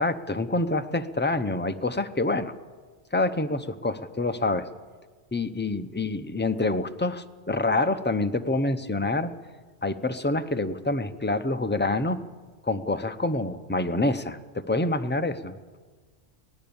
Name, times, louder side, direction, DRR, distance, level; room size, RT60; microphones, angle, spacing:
voice 1, 0.0-2.5 3.1-4.7 5.3-9.3 9.8-12.2 12.6-15.5, left 2 dB, 10° left, 9 dB, 0.5 m, -27 dB
24.0 x 18.5 x 7.1 m, 1.5 s
omnidirectional pair, 1.3 m